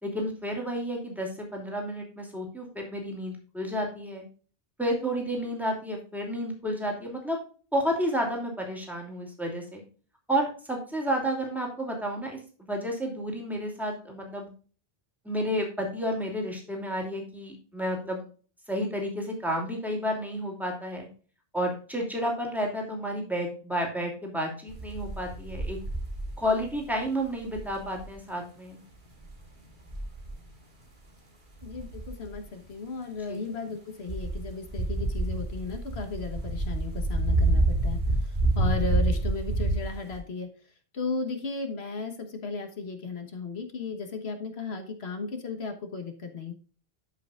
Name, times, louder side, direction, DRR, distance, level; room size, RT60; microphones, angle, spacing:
voice 1, 0.0-4.2 4.8-7.4 7.7-9.8 10.3-12.4 12.7-14.5 15.2-18.3 18.7-21.1 21.5-25.8 26.4-28.8 33.3-33.5, equal, ahead, 0 dB, 2.7 m, -31 dB
sound 1, 24.7-26.9 27.4-28.1 29.3-29.4 29.9-30.5 31.6-32.4 34.1-40.2, right 2 dB, 50° right, 2.0 m, -28 dB
voice 2, 31.6-40.5 40.9-46.5, left 4 dB, 75° left, 5 dB, 1.5 m, -35 dB
12.5 x 5.8 x 2.4 m, 0.38 s
omnidirectional pair, 1.1 m